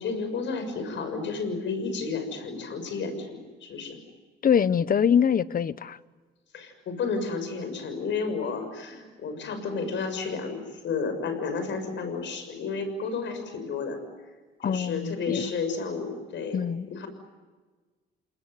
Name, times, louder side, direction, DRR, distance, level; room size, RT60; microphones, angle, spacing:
voice 1, 0.0-4.0 6.5-14.0 14.6-16.6 16.9-17.1, left 4 dB, 70° left, 8 dB, 6.7 m, -32 dB
voice 2, 4.4-6.0 14.6-15.5 16.5-17.0, left 7 dB, 45° left, 16 dB, 1.1 m, -24 dB
29.0 x 20.5 x 9.5 m, 1.4 s
cardioid pair, 90°, 20 cm